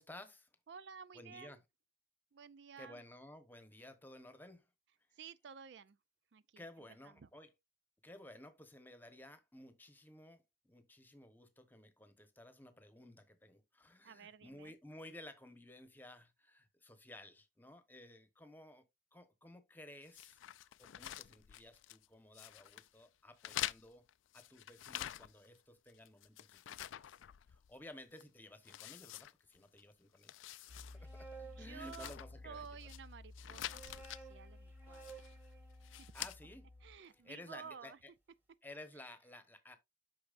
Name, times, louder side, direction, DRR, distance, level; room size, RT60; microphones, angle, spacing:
voice 1, 0.0-0.5 1.1-1.6 2.8-4.7 5.1-5.2 6.6-7.5 8.0-24.1 24.3-26.9 27.5-30.3 30.9-32.7 36.1-36.7 37.1-38.1 38.6-39.8, left 1 dB, 10° left, 1.0 m, -55 dB
voice 2, 0.7-1.6 2.3-3.0 5.1-6.0 6.3-6.6 7.0-7.3 14.0-14.7 31.4-32.1 32.4-35.3 36.0-36.1 36.8-38.0 39.0-39.1, right 6 dB, 65° right, 0.4 m, -53 dB
sound 1, 20.1-22.1 22.3-22.9 23.4-25.6 25.9-27.8 28.2-28.3 28.7-29.8 30.1-31.0 31.3-31.4 31.8-33.0 33.4-34.2 34.9-35.4 35.8-36.4, left 13 dB, 90° left, 0.4 m, -46 dB
Piano, 30.7-37.0, left 2 dB, 60° left, 0.7 m, -54 dB
sound 2, 30.7-32.6 33.4-37.6, right 5 dB, 10° right, 1.5 m, -57 dB
8.6 x 6.0 x 2.5 m
head